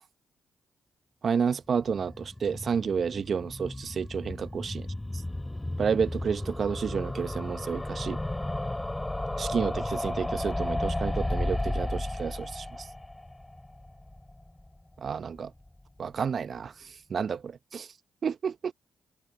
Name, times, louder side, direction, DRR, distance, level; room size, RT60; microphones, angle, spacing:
voice 1, 1.2-4.6 5.8-8.2 9.4-12.9 15.0-15.5 16.0-17.9 18.2-18.7, right 6 dB, 55° right, 1.4 m, -30 dB
sound 1, 1.7-14.8 15.1-15.2 15.4-15.5 15.7-15.8, left 1 dB, 15° left, 4.6 m, -34 dB
hypercardioid pair, 40°, 0 cm